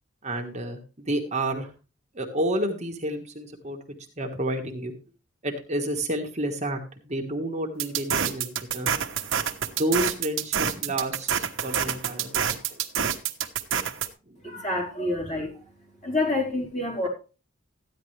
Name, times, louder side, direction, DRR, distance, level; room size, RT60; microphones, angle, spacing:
voice 1, 0.2-1.7 2.1-3.8 4.2-4.9 5.4-8.9 9.8-12.6, right 1 dB, 35° right, 2 dB, 1.5 m, -30 dB
sound 1, 7.8-14.1, right 8 dB, 65° right, 1.2 m, -27 dB
voice 2, 14.4-15.7 16.0-17.1, left 2 dB, 35° left, -1 dB, 4.3 m, -28 dB
14.0 x 10.0 x 3.3 m, 0.33 s
head